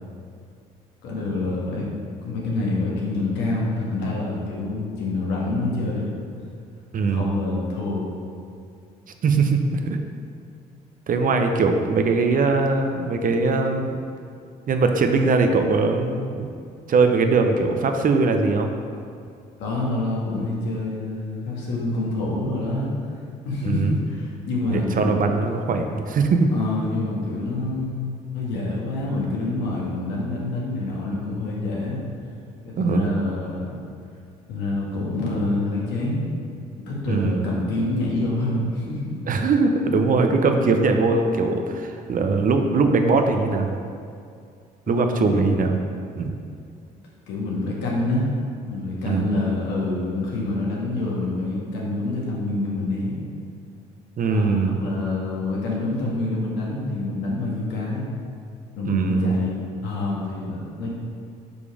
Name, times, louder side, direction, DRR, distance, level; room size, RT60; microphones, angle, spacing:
voice 1, 1.0-1.9 2.2-6.1 7.0-8.1 19.6-22.9 23.4-25.3 26.5-28.0 28.3-32.0 32.6-33.7 34.5-36.2 36.8-39.2 44.9-45.7 47.3-48.3 48.7-53.2 54.3-58.1 58.8-60.9, left 2 dB, 75° left, -4 dB, 1.6 m, -27 dB
voice 2, 6.9-7.3 9.2-10.0 11.1-14.0 14.7-16.5 16.9-18.7 23.6-24.0 24.7-26.5 32.8-33.1 37.1-37.5 39.3-43.7 44.9-45.8 46.2-46.4 49.0-49.3 54.2-54.8 58.8-59.3, right 4 dB, 50° right, 5 dB, 0.7 m, -21 dB
5.3 x 5.0 x 4.8 m, 2.3 s
hypercardioid pair, 60°, 18 cm